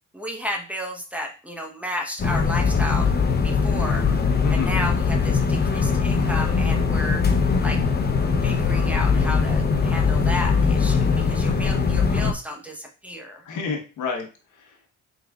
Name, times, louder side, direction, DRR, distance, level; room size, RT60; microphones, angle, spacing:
voice 1, 0.1-3.1 3.4-4.1 4.5-7.2 7.6-7.8 8.4-13.4, left 1 dB, 5° right, 2 dB, 0.9 m, -32 dB
sound 1, 2.2-12.3, left 5 dB, 35° left, 0.7 m, -21 dB
voice 2, 13.4-14.9, left 5 dB, 80° left, 2 dB, 1.2 m, -30 dB
4.8 x 3.9 x 2.4 m, 0.34 s
cardioid pair, 90°, 30 cm